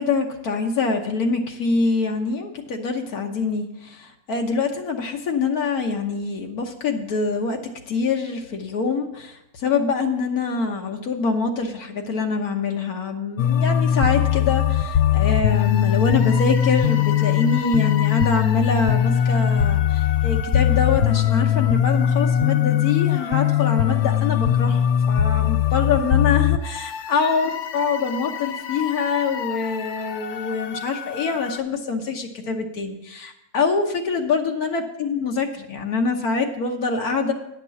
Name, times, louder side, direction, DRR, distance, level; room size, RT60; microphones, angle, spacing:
voice 1, 0.0-3.7 4.0-7.6 7.9-9.3 9.6-37.3, left 4 dB, 85° left, 2 dB, 1.5 m, -25 dB
sound 1, 13.4-31.6, left 10 dB, 65° left, 0.7 m, -21 dB
10.0 x 6.0 x 6.9 m, 0.88 s
omnidirectional pair, 1.5 m